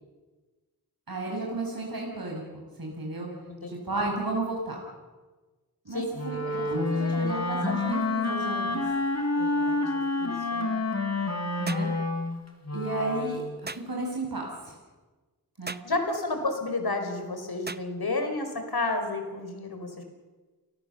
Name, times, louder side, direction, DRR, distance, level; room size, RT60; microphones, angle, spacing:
voice 1, 1.1-3.3 3.7-4.8 5.8-8.8 11.6-11.9 12.7-13.4 13.7-14.7 15.6-15.8, right 2 dB, 65° right, -1 dB, 6.4 m, -33 dB
Wind instrument woodwind instrument, 6.1-13.5, left 2 dB, 45° left, 3.9 m, -28 dB
voice 2, 6.9-7.8 9.3-10.7 15.8-20.0, left 2 dB, 75° left, 5 dB, 4.8 m, -32 dB
sound 1, 11.7-11.9 13.7-13.9 15.7-15.9 17.7-17.9, right 3 dB, 25° right, 0.8 m, -37 dB
29.5 x 18.5 x 7.0 m, 1.3 s
wide cardioid pair, 65°, 38 cm